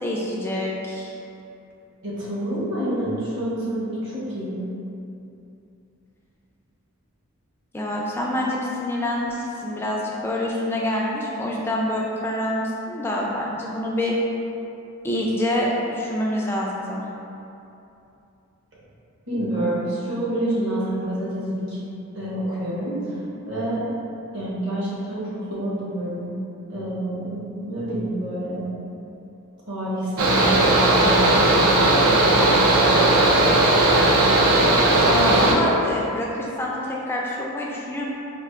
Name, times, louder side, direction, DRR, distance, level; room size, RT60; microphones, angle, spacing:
voice 1, 0.0-1.2 7.7-14.1 15.0-17.0 34.6-34.7 35.0-38.1, left 1 dB, 10° left, -3 dB, 0.3 m, -26 dB
voice 2, 2.0-4.6 19.3-21.8 22.1-23.9 24.3-26.3 26.7-28.6 29.7-32.1, right 1 dB, 55° right, -9 dB, 1.0 m, -28 dB
Mechanical fan, 30.2-35.5, right 2 dB, 75° right, 0.5 m, -17 dB
4.4 x 2.6 x 2.4 m, 2.8 s
head